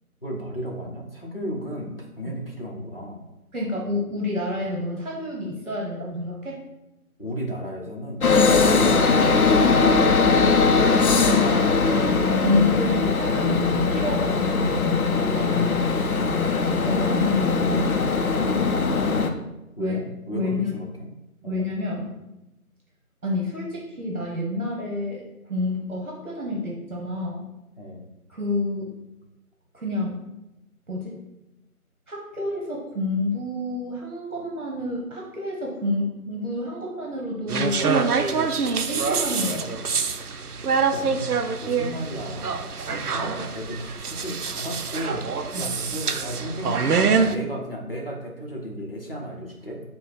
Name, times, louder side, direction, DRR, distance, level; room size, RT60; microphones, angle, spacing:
voice 1, 0.2-1.9 2.2-3.2 7.2-9.5 15.3-16.5 19.8-21.1 21.4-21.6 27.8-28.0 40.9-49.8, equal, 40° left, -2 dB, 0.8 m, -34 dB
voice 2, 3.5-6.5 8.3-10.9 11.2-11.7 12.1-15.0 16.8-18.3 19.8-20.0 20.3-20.8 21.5-22.2 23.2-27.5 28.3-28.9 29.7-30.2 30.9-31.2 32.1-37.8 38.9-39.9 45.5-45.7, left 2 dB, 60° right, -2 dB, 1.1 m, -29 dB
sound 1, 8.2-19.3, left 4 dB, 75° left, 0.6 m, -20 dB
sound 2, 37.5-47.3, right 5 dB, 90° right, 0.6 m, -25 dB
5.0 x 2.3 x 3.9 m, 0.93 s
figure-of-eight pair, 175°, 44 cm